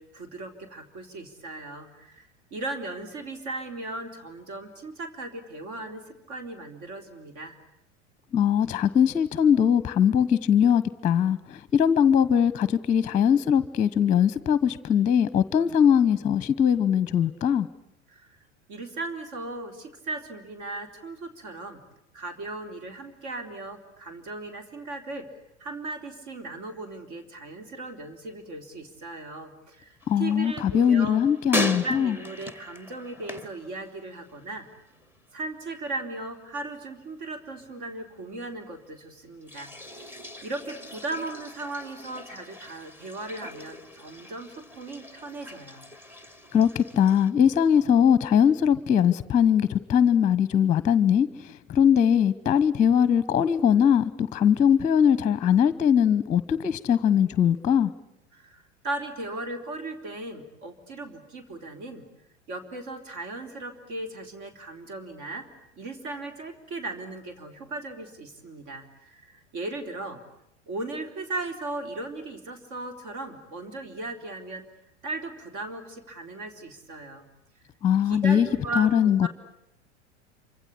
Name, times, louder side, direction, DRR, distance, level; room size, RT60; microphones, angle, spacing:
voice 1, 0.0-7.6 18.1-18.4 18.7-21.8 22.1-25.3 25.6-31.2 31.6-34.7 35.3-39.7 40.4-45.8 58.3-62.0 62.5-65.5 65.8-70.2 70.7-74.7 75.0-77.3 78.0-79.3, right 2 dB, 50° right, 3.9 m, -37 dB
voice 2, 8.3-17.7 30.1-32.2 46.5-57.9 77.8-78.5 78.8-79.3, left 8 dB, 20° left, 1.0 m, -21 dB
sound 1, 30.0-34.4 34.7-35.3 39.4-47.3, equal, 5° right, 1.6 m, -38 dB
27.5 x 25.5 x 8.4 m
figure-of-eight pair, 85°, 36 cm